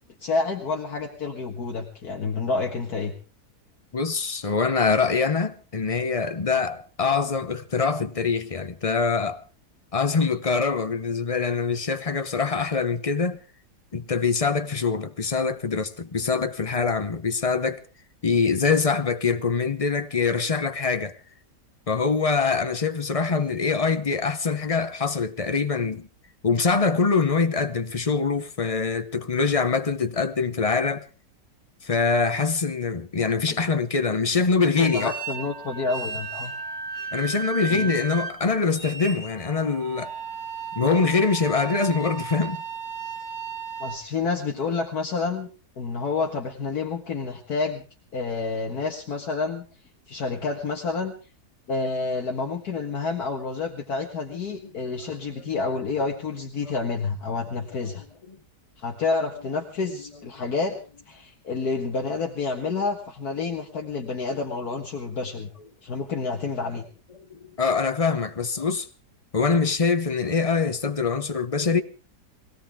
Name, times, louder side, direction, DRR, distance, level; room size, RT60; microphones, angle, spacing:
voice 1, 0.2-3.1 33.5-33.6 34.6-36.5 37.7-37.9 43.8-45.5 45.8-47.9 48.1-49.7 50.1-51.1 51.7-58.0 58.8-60.8 61.1-65.5 65.8-66.8, left 4 dB, 65° left, 2.1 m, -29 dB
voice 2, 3.9-9.4 9.9-13.4 13.9-17.8 18.2-21.2 21.9-26.1 26.4-31.1 31.8-35.2 37.1-40.1 40.7-42.6 54.6-54.7 56.7-56.8 57.8-57.9 67.3-68.9 69.3-71.8, left 4 dB, 35° left, 0.6 m, -24 dB
sound 1, 34.8-44.0, right 5 dB, 55° right, 3.6 m, -35 dB
21.5 x 17.0 x 3.6 m
omnidirectional pair, 1.8 m